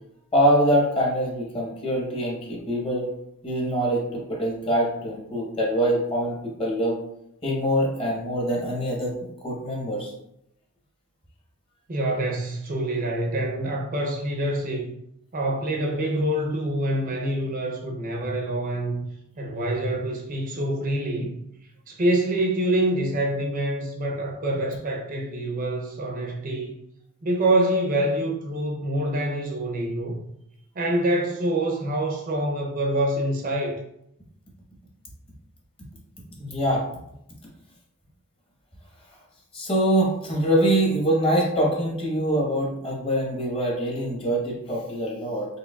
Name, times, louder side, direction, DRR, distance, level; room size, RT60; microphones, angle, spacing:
voice 1, 0.3-3.1 3.4-7.0 7.4-9.1 9.4-10.1 36.4-36.8 39.5-45.5, equal, 25° left, -2 dB, 0.9 m, -24 dB
voice 2, 11.9-14.9 15.3-19.1 19.4-21.4 21.9-26.7 27.2-30.3 30.7-33.8, right 1 dB, 40° right, 0 dB, 0.5 m, -26 dB
4.5 x 3.0 x 2.2 m, 0.79 s
head